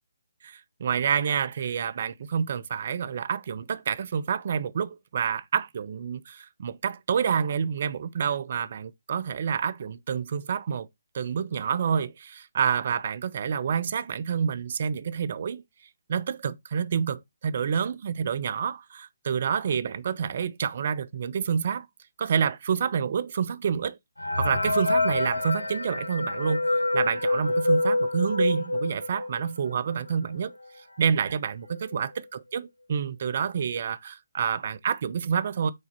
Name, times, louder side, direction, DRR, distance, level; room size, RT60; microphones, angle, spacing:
voice 1, 0.4-10.9 11.1-15.6 16.1-21.9 22.2-24.0 24.4-26.6 26.9-30.5 31.0-35.7, right 7 dB, 50° right, 0.8 m, -28 dB
sound 1, 24.2-29.6 30.1-30.2 30.4-30.5 31.2-31.3 31.7-32.0, left 2 dB, 85° left, 0.9 m, -26 dB
6.8 x 4.3 x 4.1 m
figure-of-eight pair, 140°, 0 cm